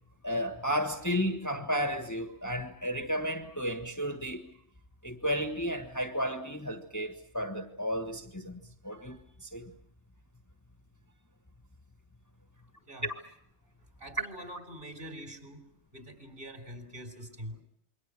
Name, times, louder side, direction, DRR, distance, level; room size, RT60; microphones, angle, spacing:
voice 1, 0.2-4.5 5.0-9.7 13.0-13.1, equal, 15° left, 1.5 m, -33 dB
voice 2, 14.0-15.7 15.9-17.6, equal, 50° right, 4.0 m, -44 dB
28.0 x 23.0 x 6.3 m
omnidirectional pair, 1.2 m